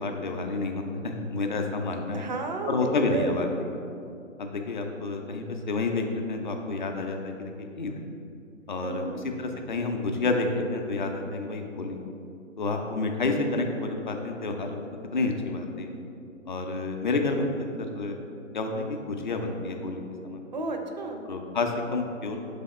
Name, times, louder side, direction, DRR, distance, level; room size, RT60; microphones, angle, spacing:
voice 1, 0.0-2.3 2.7-3.5 4.4-8.0 8.7-12.0 12.6-14.8 15.1-15.9 16.5-18.2 18.5-20.4 21.2-22.4, left 3 dB, 40° left, 3 dB, 0.5 m, -29 dB
voice 2, 2.1-3.5 8.8-9.2 20.5-21.3, right 3 dB, 35° right, 4 dB, 0.4 m, -33 dB
5.6 x 3.4 x 5.2 m, 2.6 s
figure-of-eight pair, 135°, 39 cm